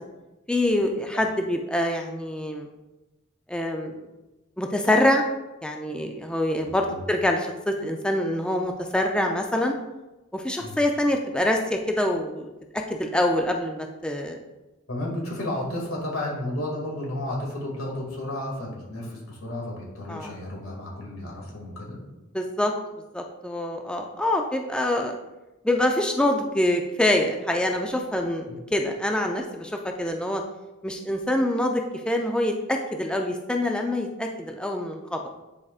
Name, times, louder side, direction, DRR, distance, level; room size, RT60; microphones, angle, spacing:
voice 1, 0.5-2.7 3.5-3.9 4.6-5.2 5.6-9.7 10.3-12.5 12.9-14.4 20.1-20.3 22.3-22.7 23.1-25.2 25.6-30.4 30.8-35.2, left 1 dB, 5° left, 2 dB, 0.4 m, -25 dB
voice 2, 6.6-7.0 10.6-10.8 14.9-22.0 28.5-28.6, left 1 dB, 90° left, -3 dB, 2.2 m, -32 dB
9.8 x 4.7 x 2.4 m, 1.0 s
head